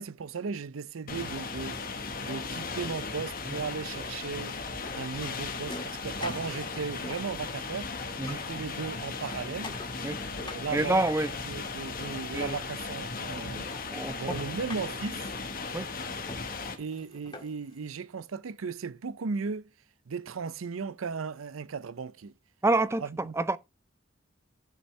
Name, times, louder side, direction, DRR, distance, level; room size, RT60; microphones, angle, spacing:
voice 1, 0.0-4.6 4.9-7.9 8.2-9.8 10.4-11.1 11.4-13.7 14.2-15.2 16.8-19.7 20.1-22.3 23.0-23.3, right 5 dB, 85° right, 0.5 m, -36 dB
sound 1, 1.1-16.8, left 4 dB, 45° left, 1.2 m, -37 dB
sound 2, 4.2-7.9 8.2-11.9 12.6-12.7 13.1-13.2 13.5-17.8, left 2 dB, 25° left, 1.7 m, -47 dB
voice 2, 10.7-11.3 12.3-12.6 13.3-13.4 13.9-14.2 15.7-15.9 22.6-23.0 23.4-23.6, right 2 dB, 15° right, 0.4 m, -27 dB
14.5 x 5.4 x 3.2 m
head